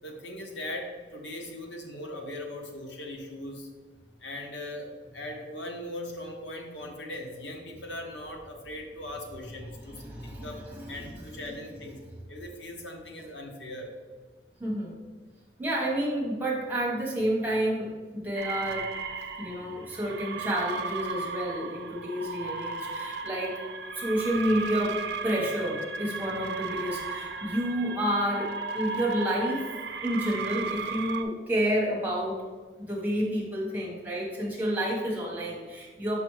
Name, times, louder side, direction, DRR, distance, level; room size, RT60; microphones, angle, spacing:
voice 1, 0.0-3.7 4.2-10.6 10.9-12.0 12.3-13.9, left 1 dB, 90° left, 2 dB, 0.9 m, -39 dB
voice 2, 9.8-11.4 14.6-14.9 15.6-18.9 19.4-23.6 23.9-29.7 30.0-32.4 32.8-36.2, equal, 10° right, -4 dB, 1.2 m, -30 dB
sound 1, 18.3-31.2, right 5 dB, 75° right, 0.5 m, -35 dB
6.0 x 5.2 x 3.2 m, 1.4 s
head